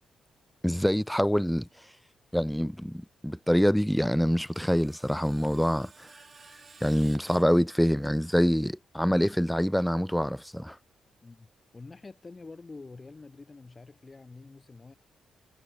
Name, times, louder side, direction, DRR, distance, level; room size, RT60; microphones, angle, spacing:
voice 1, 0.6-1.7 2.3-6.1 6.8-10.8, equal, ahead, 0.3 m, -25 dB
Screech, 3.9-8.2, right 5 dB, 35° right, 4.6 m, -55 dB
voice 2, 11.2-15.0, left 3 dB, 25° left, 7.8 m, -47 dB
cardioid pair, 130°, 0 cm